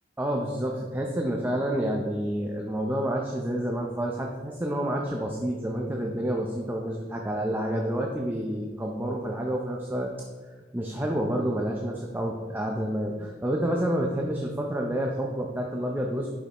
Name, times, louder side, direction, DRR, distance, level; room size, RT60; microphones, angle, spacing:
voice 1, 0.2-10.1 10.7-16.3, right 1 dB, 10° right, 0 dB, 0.6 m, -29 dB
10.5 x 5.5 x 3.0 m, 1.4 s
head